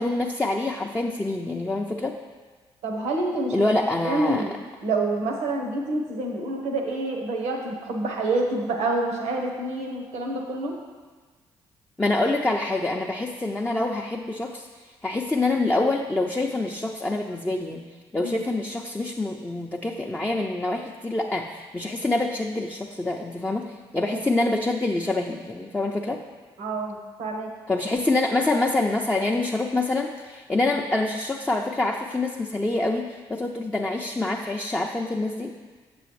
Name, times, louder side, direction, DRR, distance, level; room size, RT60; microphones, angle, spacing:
voice 1, 0.0-2.2 3.5-4.4 12.0-14.7 15.0-17.8 18.1-26.2 27.7-35.5, left 2 dB, 10° left, 0 dB, 0.5 m, -26 dB
voice 2, 2.8-4.5 4.8-10.7 18.2-18.3 23.9-24.2 26.6-27.5, right 2 dB, 85° right, 1 dB, 1.1 m, -27 dB
7.5 x 6.9 x 3.2 m, 1.4 s
supercardioid pair, 65°, 11 cm